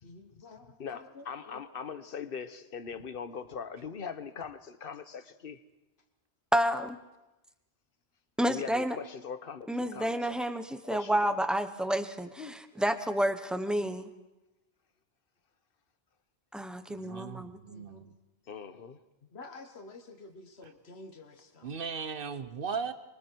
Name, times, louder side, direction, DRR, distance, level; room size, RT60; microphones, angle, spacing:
voice 1, 0.0-1.6 12.4-12.6 17.7-18.1 19.3-21.7, left 3 dB, 90° left, 1.5 m, -49 dB
voice 2, 0.8-5.6 8.5-10.3 10.8-11.5 18.5-19.0, left 6 dB, 65° left, 1.2 m, -41 dB
voice 3, 6.5-7.0 8.4-9.0 9.7-14.1 16.5-17.6, equal, ahead, 1.0 m, -30 dB
voice 4, 16.9-18.2 20.6-20.7 21.6-22.9, right 5 dB, 60° right, 1.2 m, -37 dB
25.0 x 24.0 x 4.6 m
omnidirectional pair, 1.0 m